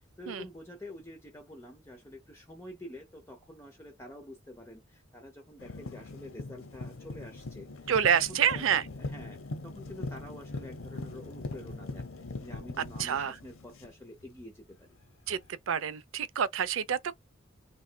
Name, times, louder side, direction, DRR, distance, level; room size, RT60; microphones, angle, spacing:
voice 1, 0.2-15.0, left 1 dB, 15° left, 0.6 m, -48 dB
sound 1, 5.6-14.4 15.3-15.4, left 2 dB, 85° left, 0.7 m, -41 dB
voice 2, 7.9-8.8 13.0-13.3 15.3-15.4 15.7-17.1, right 8 dB, 80° right, 0.5 m, -27 dB
3.2 x 3.1 x 2.2 m
head